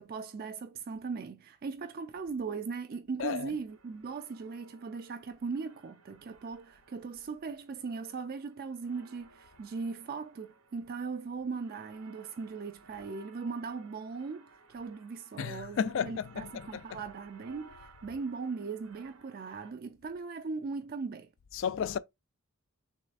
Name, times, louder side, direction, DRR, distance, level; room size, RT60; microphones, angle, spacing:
voice 1, 0.0-21.3, right 4 dB, 45° right, 0.3 m, -39 dB
voice 2, 3.2-3.6 15.4-17.0 21.5-22.0, left 7 dB, 60° left, 0.3 m, -33 dB
sound 1, 3.7-19.7, right 3 dB, 75° right, 0.8 m, -59 dB
6.4 x 3.1 x 2.5 m
head